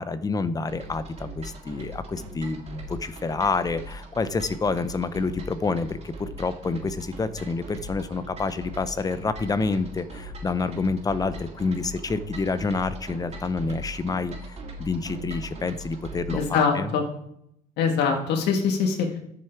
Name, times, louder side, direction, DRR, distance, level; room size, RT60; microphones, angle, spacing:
voice 1, 0.0-16.9, left 4 dB, 20° left, 13 dB, 0.7 m, -28 dB
sound 1, 0.7-16.5, right 1 dB, 40° right, 3.0 m, -40 dB
voice 2, 16.3-17.0 17.8-19.2, left 5 dB, 80° left, 3 dB, 1.7 m, -23 dB
10.5 x 6.6 x 4.5 m, 0.75 s
cardioid pair, 110°, 17 cm